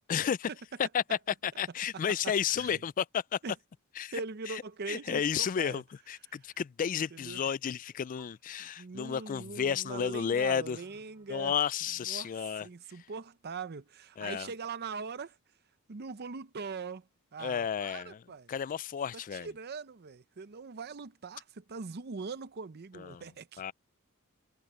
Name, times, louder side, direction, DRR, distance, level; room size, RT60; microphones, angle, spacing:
voice 1, 0.1-0.5 0.9-3.4 4.0-4.1 4.5-4.6 4.9-10.8 11.3-12.7 14.2-14.5 17.4-19.5 22.9-23.2 23.6-23.7, left 8 dB, 40° left, 0.3 m, -32 dB
voice 2, 2.2-2.8 3.4-3.5 4.1-5.8 7.1-7.4 8.6-11.5 12.1-15.4 15.9-17.1 17.3-18.5 19.3-23.6, right 4 dB, 50° right, 0.6 m, -41 dB
sound 1, 7.3-7.6 7.9-8.3 9.3-10.3 10.8-11.4 11.8-12.2, right 2 dB, 20° right, 7.6 m, -65 dB
head